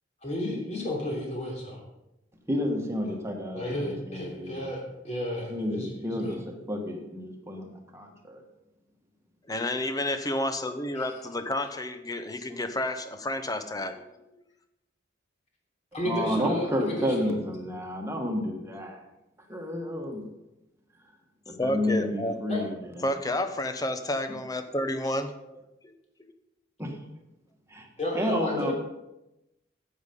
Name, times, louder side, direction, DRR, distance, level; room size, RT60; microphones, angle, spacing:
voice 1, 0.2-1.7 3.5-6.3 10.9-11.1 15.9-17.4 22.5-22.6 28.0-28.7, left 1 dB, 35° left, -1 dB, 3.2 m, -33 dB
voice 2, 2.5-4.7 5.5-8.4 16.0-19.0 19.5-20.3 21.5-23.1 26.8-27.0 27.7-27.9 28.1-28.7, left 1 dB, 15° right, 2 dB, 1.6 m, -31 dB
voice 3, 9.5-14.2 21.6-22.4 23.0-25.3 25.8-25.9 26.2-26.3, left 1 dB, 20° left, 9 dB, 0.8 m, -30 dB
10.0 x 8.3 x 5.4 m, 0.91 s
head